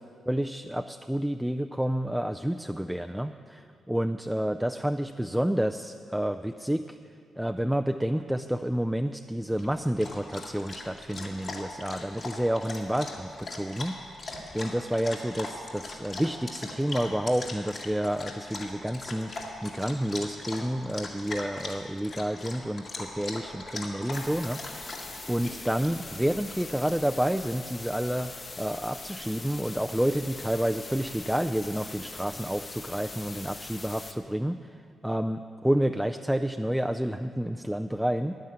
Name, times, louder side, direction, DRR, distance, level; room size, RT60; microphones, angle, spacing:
voice 1, 0.3-7.0 7.4-14.0 14.5-24.9 25.3-38.3, equal, 5° right, 7 dB, 0.4 m, -29 dB
Dog, 9.5-26.9, left 2 dB, 55° left, 2.0 m, -40 dB
sound 1, 24.1-34.1, left 3 dB, 40° left, 1.0 m, -42 dB
9.8 x 9.3 x 7.5 m, 2.3 s
supercardioid pair, 50°, 0 cm